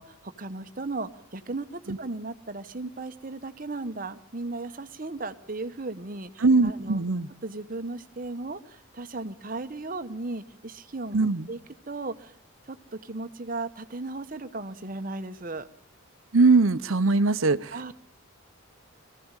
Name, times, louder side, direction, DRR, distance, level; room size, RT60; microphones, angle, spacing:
voice 1, 0.0-7.0 7.4-11.6 11.9-12.3 12.7-15.7 17.7-17.9, right 2 dB, 40° right, 10 dB, 1.0 m, -36 dB
voice 2, 6.4-7.3 11.1-11.5 16.3-17.9, right 3 dB, 75° right, 14 dB, 0.8 m, -21 dB
23.0 x 15.0 x 8.9 m, 0.64 s
head